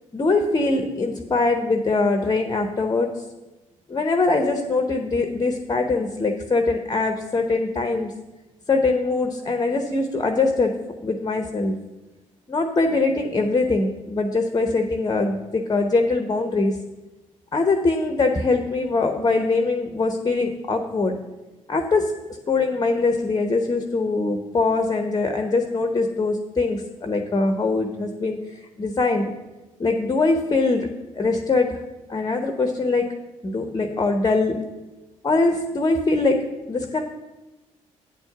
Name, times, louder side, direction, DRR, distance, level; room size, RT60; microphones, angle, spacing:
voice 1, 0.1-3.1 3.9-8.1 8.7-10.7 11.0-11.8 12.5-16.8 17.5-21.2 21.7-22.1 22.5-29.3 29.8-30.9 31.2-31.8 32.1-33.1 33.4-34.6 35.2-36.4 36.7-37.0, left 3 dB, 20° left, 5 dB, 0.8 m, -22 dB
9.0 x 4.5 x 6.7 m, 1.1 s
figure-of-eight pair, 45°, 17 cm